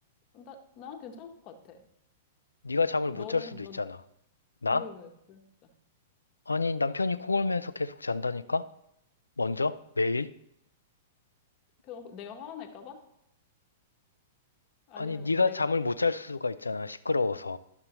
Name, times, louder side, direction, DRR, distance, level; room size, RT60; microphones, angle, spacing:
voice 1, 0.3-1.8 3.1-3.9 4.7-5.7 11.8-13.0 14.9-15.7, left 7 dB, 40° left, 4 dB, 1.1 m, -45 dB
voice 2, 2.6-4.0 4.6-4.8 6.5-8.7 9.4-10.3 15.0-17.6, left 3 dB, 90° left, 15 dB, 0.4 m, -28 dB
11.5 x 6.6 x 2.9 m, 0.78 s
figure-of-eight pair, 105°, 0 cm